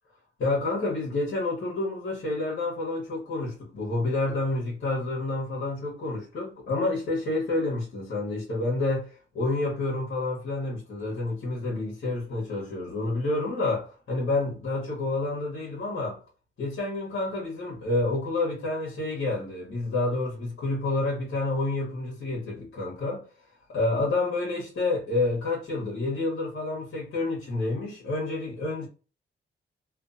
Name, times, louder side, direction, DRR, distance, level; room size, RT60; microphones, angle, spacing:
voice 1, 0.4-16.2 16.6-23.2 23.7-28.9, left 2 dB, 70° left, 1.1 m, -29 dB
2.5 x 2.3 x 2.5 m
cardioid pair, 75°, 21 cm